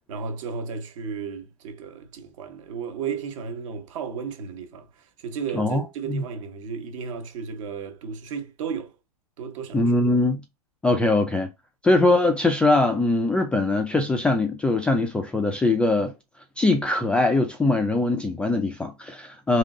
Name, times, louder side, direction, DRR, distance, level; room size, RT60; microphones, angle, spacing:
voice 1, 0.1-9.0 9.4-9.8 19.5-19.6, right 6 dB, 55° right, 1.2 m, -34 dB
voice 2, 5.5-6.2 9.7-10.4 10.8-11.5 11.8-16.1 16.6-19.6, left 2 dB, 5° left, 0.3 m, -22 dB
3.7 x 3.2 x 3.7 m
hypercardioid pair, 130°, 20 cm